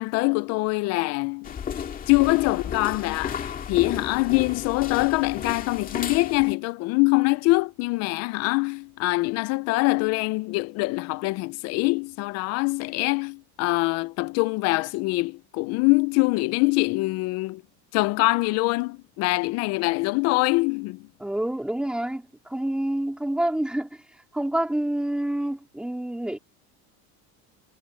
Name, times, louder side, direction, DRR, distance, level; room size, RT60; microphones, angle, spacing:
voice 1, 0.0-1.5 2.1-17.6 17.9-21.0, left 24 dB, 50° left, 0.4 m, -24 dB
sound 1, 1.4-6.5, left 8 dB, 25° left, 2.0 m, -33 dB
voice 2, 21.2-24.0 24.3-26.4, right 1 dB, 5° right, 2.4 m, -27 dB
cardioid pair, 160°, 33 cm